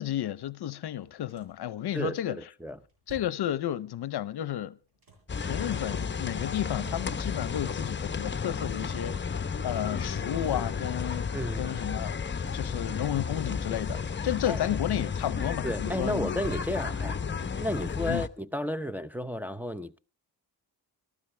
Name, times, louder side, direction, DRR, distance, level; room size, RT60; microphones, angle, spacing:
voice 1, 0.0-2.4 3.1-4.8 5.4-11.3 11.6-16.3 17.2-17.4 18.1-18.2, left 12 dB, 70° left, 0.7 m, -32 dB
sound 1, 0.9-1.7 2.7-3.6 4.6-5.4 6.3-7.5 8.1-8.2 8.4-9.0 9.9-11.1 12.0-12.8 13.5-14.6 14.8-15.6 16.2-17.2 18.5-18.6 19.1-19.3, right 2 dB, 60° right, 7.6 m, -51 dB
voice 2, 1.9-2.8 11.3-11.7 14.4-14.6 15.6-17.2 17.6-20.0, equal, 5° right, 0.7 m, -33 dB
sound 2, 5.3-18.3, left 6 dB, 25° left, 0.9 m, -33 dB
25.0 x 15.0 x 3.3 m
cardioid pair, 85°, 40 cm